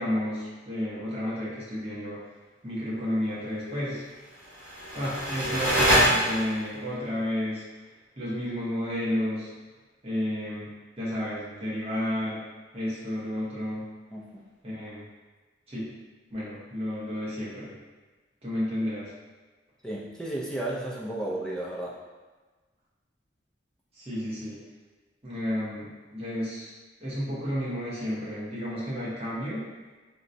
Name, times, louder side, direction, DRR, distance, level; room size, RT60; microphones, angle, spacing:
voice 1, 0.0-2.2 2.6-4.0 4.9-7.6 8.2-9.5 10.0-10.7 11.0-12.4 12.7-13.8 14.6-15.0 15.7-15.9 16.3-17.7 18.4-19.1 23.9-24.6 25.2-26.7 27.0-29.7, equal, 35° right, -8 dB, 1.0 m, -31 dB
sound 1, 4.4-6.8, equal, 60° right, 1.4 m, -25 dB
voice 2, 14.1-14.4 19.8-22.0, right 1 dB, 5° left, -5 dB, 0.4 m, -33 dB
3.9 x 2.2 x 2.6 m, 1.3 s
head